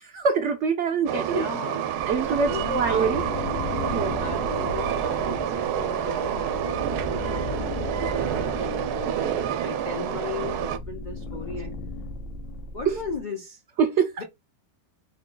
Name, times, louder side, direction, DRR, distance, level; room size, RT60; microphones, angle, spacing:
voice 1, 0.1-1.5 2.1-3.2 3.9-4.4 12.9-13.0 13.8-14.2, right 5 dB, 65° right, 0.7 m, -24 dB
voice 2, 1.0-1.9 2.2-3.4 4.2-11.7 12.7-13.6 14.2-14.3, left 4 dB, 60° left, 0.4 m, -36 dB
Train, 1.1-10.8, right 9 dB, 85° right, 1.1 m, -28 dB
sound 1, 2.0-13.2, left 3 dB, 80° left, 1.1 m, -36 dB
3.8 x 2.2 x 3.7 m
omnidirectional pair, 1.7 m